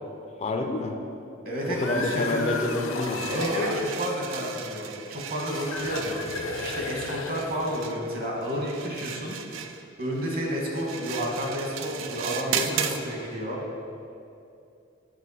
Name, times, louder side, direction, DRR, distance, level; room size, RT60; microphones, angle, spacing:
voice 1, 0.4-1.0 1.7-3.3, left 2 dB, 35° left, 4 dB, 0.4 m, -28 dB
voice 2, 1.4-2.7 3.3-9.4 10.0-13.6, equal, 50° right, -2 dB, 1.4 m, -30 dB
sound 1, 1.5-4.0 5.4-7.8, left 3 dB, 75° left, 0.6 m, -34 dB
sound 2, 3.0-13.0, right 8 dB, 75° right, 0.4 m, -36 dB
8.1 x 4.6 x 4.1 m, 2.6 s
head